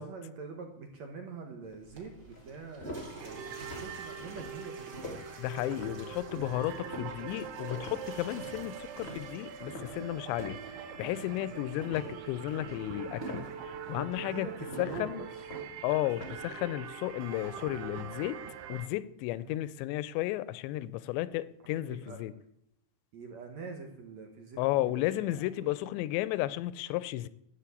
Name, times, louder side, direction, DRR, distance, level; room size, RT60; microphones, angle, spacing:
voice 1, 0.0-5.1 11.4-11.5 11.7-12.3 14.3-15.3 19.4-19.6 21.8-22.2 23.1-25.7, right 4 dB, 60° right, 1.8 m, -45 dB
sound 1, 1.8-1.9 2.3-10.8 11.0-11.4 11.8-16.5, left 1 dB, 40° left, 0.8 m, -45 dB
Water / Toilet flush, 1.8-10.2, right 2 dB, 25° right, 3.2 m, -51 dB
sound 2, 3.2-18.9, right 7 dB, 90° right, 3.4 m, -43 dB
voice 2, 5.4-14.5 14.8-15.2 15.8-18.4 18.7-22.3 24.6-27.3, left 15 dB, 85° left, 2.8 m, -33 dB
12.5 x 7.4 x 8.4 m
omnidirectional pair, 5.1 m